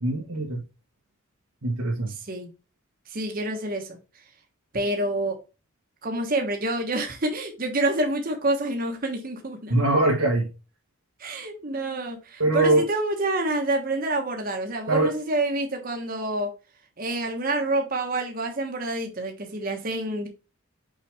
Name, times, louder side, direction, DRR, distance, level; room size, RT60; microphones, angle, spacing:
voice 1, 0.0-0.6 1.6-2.1 9.7-10.5 12.4-12.8 14.9-15.1, right 2 dB, 85° right, 1.5 m, -22 dB
voice 2, 2.2-2.5 3.1-4.0 4.7-5.4 6.0-9.8 11.2-16.5 17.0-20.3, right 2 dB, 40° right, 1.2 m, -27 dB
5.7 x 5.0 x 3.4 m
head